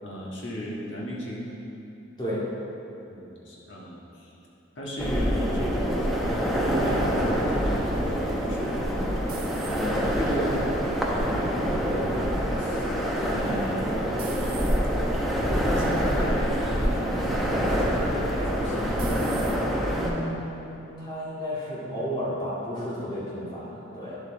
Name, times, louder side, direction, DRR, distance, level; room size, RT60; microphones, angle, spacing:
voice 1, 0.0-1.5 3.1-4.3 4.7-9.3 11.1-11.5 11.8-13.0 13.3-13.9 15.6-19.4, equal, 60° left, -5 dB, 1.6 m, -36 dB
sound 1, 5.0-20.1, equal, ahead, 0.8 m, -26 dB
sound 2, 8.3-10.2 10.8-11.3 13.3-13.7 14.2-14.8 15.6-15.8 16.3-16.4 18.3-18.7 19.0-19.6, right 8 dB, 45° right, 0.7 m, -43 dB
voice 2, 9.7-10.5 11.9-12.0 19.9-24.2, equal, 20° left, -8 dB, 2.2 m, -32 dB
10.0 x 7.4 x 4.0 m, 2.9 s
head